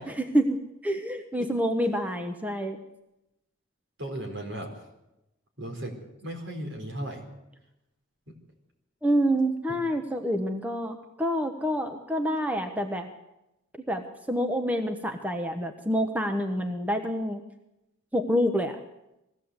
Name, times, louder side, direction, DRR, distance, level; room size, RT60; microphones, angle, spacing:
voice 1, 0.1-2.8 9.0-13.1 13.9-17.4 18.1-18.8, equal, 10° right, 6 dB, 1.0 m, -27 dB
voice 2, 4.0-4.7 5.6-6.0 6.2-7.2, right 1 dB, 60° right, 3 dB, 4.4 m, -35 dB
21.0 x 16.0 x 8.0 m, 0.91 s
head